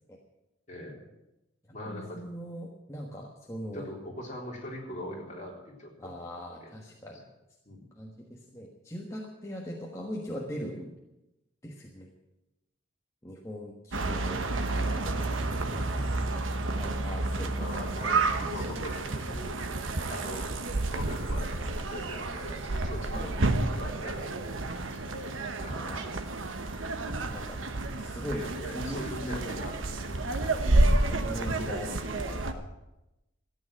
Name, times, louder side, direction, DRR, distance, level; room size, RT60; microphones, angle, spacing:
voice 1, 0.7-1.1 1.7-2.2 3.7-6.2 6.5-6.7 7.7-7.9 17.6-19.5 20.1-20.5 20.9-25.1 25.6-25.8 28.4-29.8 30.1-30.3 30.6-30.9, left 1 dB, 35° left, -2 dB, 3.8 m, -42 dB
voice 2, 1.9-3.9 6.0-7.2 7.9-11.0 11.6-12.1 13.2-15.2 15.7-16.1 16.7-18.7 19.1-19.3 23.1-23.3 25.7-26.2 26.6-26.7 27.1-27.6 28.0-29.5 31.0-32.6, equal, 15° left, -2 dB, 1.4 m, -40 dB
sound 1, 13.9-32.5, right 2 dB, 80° right, 1.2 m, -30 dB
14.0 x 9.1 x 8.9 m, 0.95 s
head